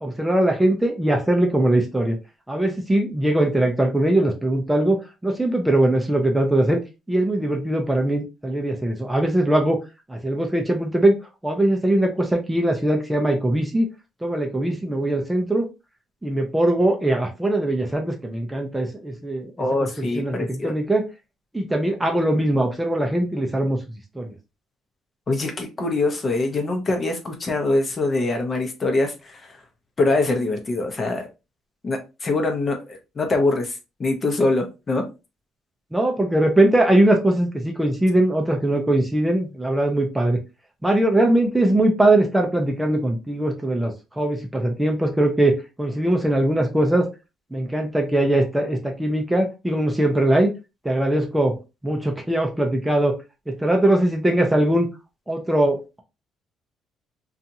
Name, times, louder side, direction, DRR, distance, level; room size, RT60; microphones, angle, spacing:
voice 1, 0.0-2.2 2.5-6.8 7.1-9.8 10.1-11.2 11.4-13.9 14.2-15.7 16.2-19.5 20.0-21.1 21.5-23.8 24.2-24.3 35.9-40.4 40.8-47.1 47.5-50.5 50.8-51.6 51.8-53.2 53.5-54.9 55.3-56.0, right 1 dB, 10° right, 0.5 m, -21 dB
voice 2, 19.6-20.7 25.3-29.6 30.0-31.3 31.8-35.1, left 2 dB, 30° left, 0.7 m, -24 dB
2.7 x 2.4 x 2.7 m
cardioid pair, 115°, 0 cm